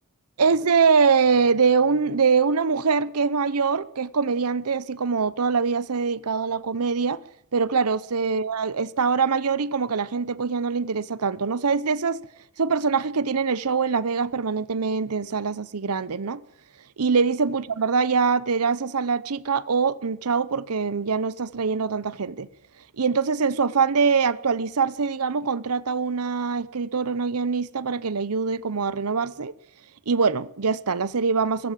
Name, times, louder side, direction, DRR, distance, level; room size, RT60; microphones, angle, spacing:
voice 1, 0.4-7.2 7.5-12.3 12.6-16.4 17.0-22.5 22.8-29.5 30.1-31.7, right 5 dB, 90° right, 0.8 m, -23 dB
23.0 x 15.0 x 7.5 m
head